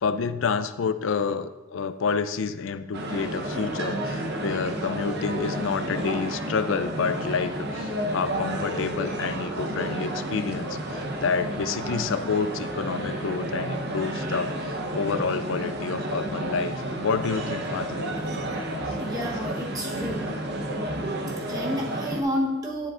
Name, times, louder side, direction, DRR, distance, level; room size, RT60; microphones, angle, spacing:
voice 1, 0.0-18.1, left 5 dB, 70° left, 12 dB, 0.4 m, -29 dB
sound 1, 2.9-22.2, right 1 dB, 50° right, 0.8 m, -31 dB
voice 2, 18.8-20.3 21.5-22.9, equal, 15° right, -1 dB, 1.0 m, -30 dB
10.5 x 7.6 x 2.5 m, 1.2 s
head